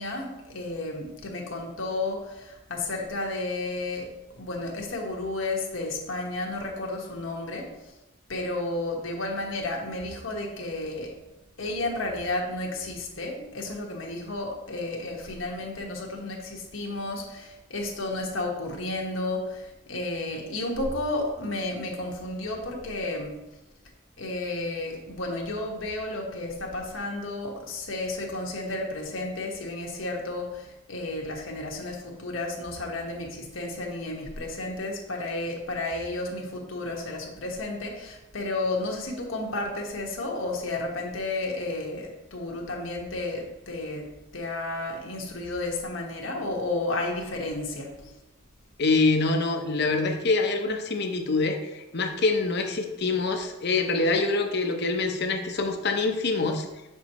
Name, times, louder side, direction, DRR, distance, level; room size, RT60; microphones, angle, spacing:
voice 1, 0.0-4.1 4.4-7.9 8.3-11.3 11.6-23.3 24.2-44.1 44.3-48.2, left 2 dB, 85° left, 0 dB, 1.4 m, -32 dB
voice 2, 48.8-56.7, left 3 dB, 55° left, 4 dB, 0.8 m, -25 dB
7.2 x 6.1 x 3.0 m, 0.98 s
head